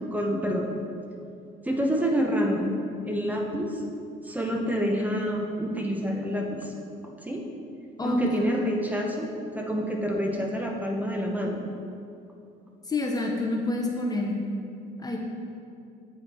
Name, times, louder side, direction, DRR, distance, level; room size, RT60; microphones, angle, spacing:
voice 1, 0.0-0.7 1.6-2.7 3.1-3.8 4.2-6.7 7.2-7.4 8.0-9.3 9.5-11.6, equal, 10° right, 0 dB, 0.8 m, -27 dB
voice 2, 8.0-8.4 12.9-14.4 15.0-15.2, left 2 dB, 20° left, 1 dB, 0.7 m, -27 dB
7.8 x 5.0 x 4.3 m, 2.6 s
cardioid pair, 110°, 17 cm